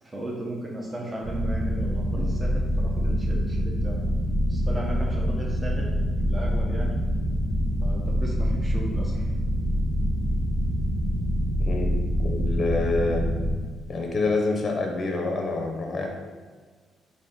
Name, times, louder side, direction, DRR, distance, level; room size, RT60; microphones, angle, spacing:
voice 1, 0.0-4.0 4.5-6.0 6.3-7.0 7.8-9.2, right 1 dB, 20° right, -2 dB, 0.6 m, -36 dB
sound 1, 1.2-13.5, equal, 50° right, 0.8 m, -25 dB
voice 2, 11.6-11.9 12.2-13.2 13.9-16.1, left 3 dB, 40° left, 1 dB, 0.6 m, -27 dB
3.7 x 2.5 x 3.6 m, 1.5 s
cardioid pair, 90°, 0 cm